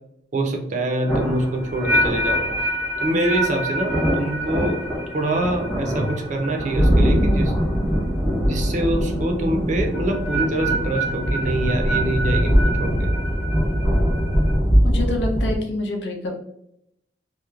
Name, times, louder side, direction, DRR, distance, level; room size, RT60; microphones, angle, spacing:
voice 1, 0.3-2.5 3.0-4.8 5.1-7.5 8.4-13.1, right 1 dB, 45° right, 3 dB, 0.4 m, -25 dB
sound 1, 0.9-8.0 8.3-8.7 9.9-14.5, right 1 dB, 60° left, 1.1 m, -28 dB
sound 2, 1.1-15.6, equal, ahead, 0.8 m, -22 dB
voice 2, 14.8-16.3, left 2 dB, 80° left, 1 dB, 0.6 m, -26 dB
2.9 x 2.0 x 2.3 m, 0.77 s
head